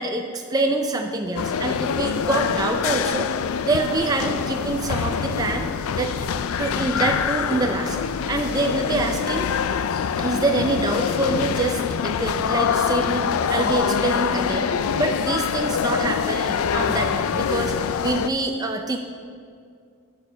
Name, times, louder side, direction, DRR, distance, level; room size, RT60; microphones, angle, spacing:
voice 1, 0.0-5.7 6.0-6.1 6.6-8.0 8.3-9.5 10.2-13.2 13.5-19.0, right 2 dB, 15° right, 3 dB, 0.4 m, -25 dB
sound 1, 1.4-18.3, left 7 dB, 70° left, 0.3 m, -25 dB
10.5 x 4.7 x 6.1 m, 2.2 s
head